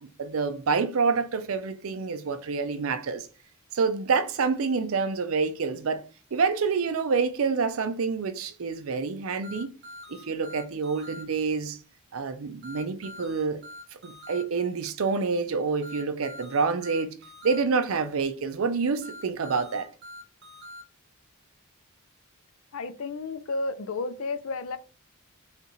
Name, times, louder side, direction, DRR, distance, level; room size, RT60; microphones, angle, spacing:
voice 1, 0.0-3.3 3.7-6.0 6.3-9.7 10.1-11.8 12.1-13.6 13.9-17.2 17.4-19.9, right 5 dB, 70° right, 0.5 m, -27 dB
sound 1, 9.4-11.2 12.6-14.4 15.8-17.6 19.0-20.8, left 1 dB, 55° right, 1.2 m, -44 dB
voice 2, 22.7-24.8, left 3 dB, 70° left, 0.5 m, -32 dB
5.2 x 2.5 x 3.1 m
head